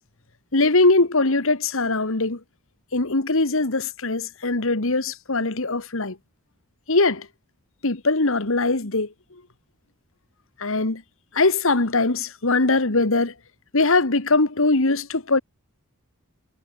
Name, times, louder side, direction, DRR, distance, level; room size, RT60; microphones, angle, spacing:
voice 1, 0.5-2.4 2.9-6.2 6.9-7.3 7.8-9.1 10.6-11.0 11.3-13.3 13.7-15.4, left 3 dB, 70° left, 1.9 m, -21 dB
head